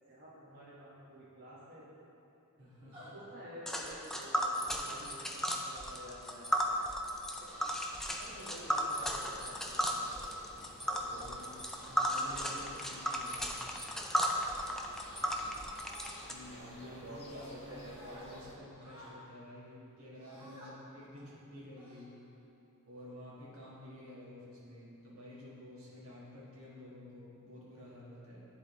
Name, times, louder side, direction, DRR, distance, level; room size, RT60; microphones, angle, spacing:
voice 1, 0.1-1.9 3.0-7.0 7.4-10.3 10.9-11.3 11.8-11.9 12.3-12.7 14.7-15.1 16.4-18.4, equal, 45° right, -9 dB, 1.3 m, -51 dB
voice 2, 2.6-3.1 11.1-11.6 11.9-13.5 16.3-22.1 22.9-28.4, left 1 dB, 65° right, -7 dB, 1.5 m, -51 dB
sound 1, 2.9-3.1 3.7-4.0 4.5-4.8 5.9-6.4 7.0-7.3 8.0-8.6 9.4-9.6 10.1-10.5 11.0-11.2 11.7-12.1 12.6-12.8 14.2-14.8 15.2-16.1 16.8-17.6 17.9-18.2 18.8-19.2 20.2-20.7 21.2-21.3 21.8-22.4, equal, 20° right, 1.2 m, -56 dB
Tick, 3.7-16.3, equal, ahead, 0.3 m, -35 dB
sound 2, 6.4-18.5, left 1 dB, 25° left, 1.2 m, -54 dB
10.5 x 3.7 x 3.1 m, 2.9 s
head